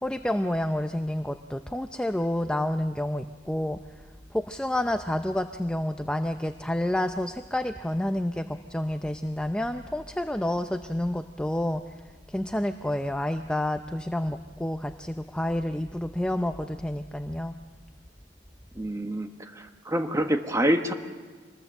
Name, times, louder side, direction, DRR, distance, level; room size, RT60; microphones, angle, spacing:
voice 1, 0.0-3.8 4.3-11.8 12.3-17.6, left 1 dB, 5° left, 7 dB, 0.6 m, -29 dB
voice 2, 18.7-20.9, right 1 dB, 15° right, 5 dB, 1.4 m, -27 dB
26.0 x 20.5 x 7.6 m, 1.4 s
head